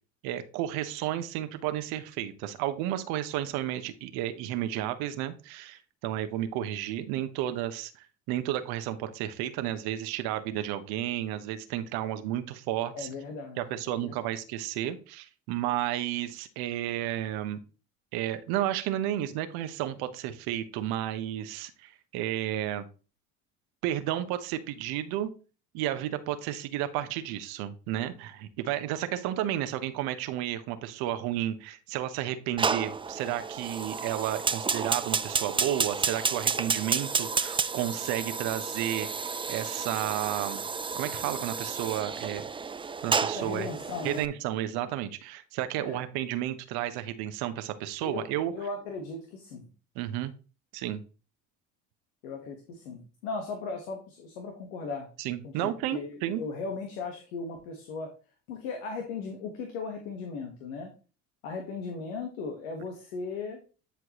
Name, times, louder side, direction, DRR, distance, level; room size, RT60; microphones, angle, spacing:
voice 1, 0.2-13.1 13.6-17.6 18.1-22.9 23.8-25.3 25.7-39.1 39.5-40.6 40.9-42.4 43.0-43.7 44.0-48.5 49.9-50.3 50.7-51.0 55.2-56.4, right 12 dB, 75° right, 10 dB, 1.1 m, -32 dB
voice 2, 12.9-14.1 43.3-44.2 45.8-46.0 48.0-49.7 52.2-55.1 55.4-58.1 58.5-60.9 61.4-63.6, left 4 dB, 85° left, 3 dB, 1.5 m, -37 dB
Fire, 32.6-44.3, right 5 dB, 15° right, 0.4 m, -31 dB
10.0 x 4.6 x 3.0 m, 0.34 s
supercardioid pair, 75°, 38 cm